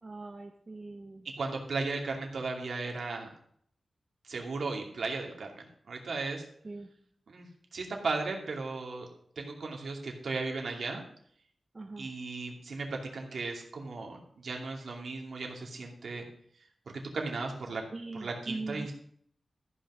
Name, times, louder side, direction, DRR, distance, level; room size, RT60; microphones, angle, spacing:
voice 1, 0.0-1.3 6.6-6.9 11.7-12.1 17.9-18.9, right 3 dB, 30° right, 4 dB, 0.8 m, -41 dB
voice 2, 1.4-3.3 4.2-6.5 7.3-9.1 9.4-11.0 12.0-16.2 16.5-17.8 18.1-18.9, right 3 dB, 75° right, 1 dB, 2.5 m, -36 dB
14.0 x 6.2 x 6.2 m, 0.65 s
wide cardioid pair, 155°, 0 cm